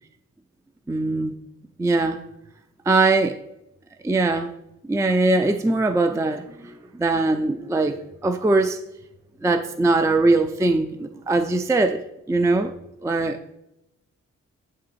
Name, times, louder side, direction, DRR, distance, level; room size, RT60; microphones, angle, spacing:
voice 1, 0.9-1.3 1.8-2.2 2.9-3.4 4.0-4.5 4.8-8.8 9.4-12.0 12.3-12.7 13.0-13.5, right 2 dB, 10° right, 0.4 m, -21 dB
7.6 x 3.8 x 4.1 m
cardioid pair, 50°, 32 cm